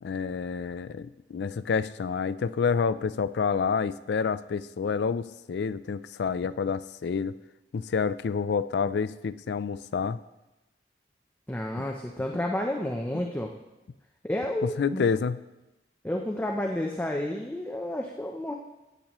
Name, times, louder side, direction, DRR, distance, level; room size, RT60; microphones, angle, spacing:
voice 1, 0.0-7.3 7.7-10.2 14.6-15.4, left 5 dB, 70° left, 15 dB, 0.4 m, -28 dB
voice 2, 11.5-13.5 14.2-15.0 16.0-18.5, left 1 dB, 10° left, 1 dB, 0.6 m, -30 dB
15.0 x 8.6 x 3.0 m, 1.0 s
head